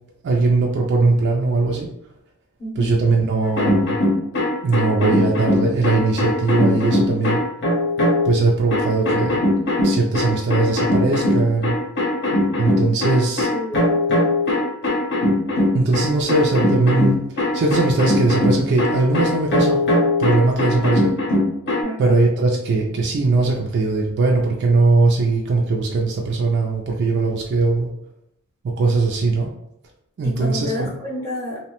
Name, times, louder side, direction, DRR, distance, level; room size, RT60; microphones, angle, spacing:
voice 1, 0.2-1.9 2.8-4.0 4.6-7.4 8.2-9.4 9.8-11.8 12.6-13.5 15.7-19.9 20.2-21.1 22.0-27.9 28.8-29.5 30.2-30.9, right 3 dB, 50° right, -1 dB, 0.3 m, -20 dB
voice 2, 2.6-2.9 13.5-14.0 21.8-22.1 30.2-31.6, left 1 dB, 10° left, -6 dB, 0.7 m, -30 dB
sound 1, 3.4-8.3 8.7-21.8, left 1 dB, 50° left, 0.7 m, -20 dB
2.8 x 2.1 x 2.9 m, 0.80 s
head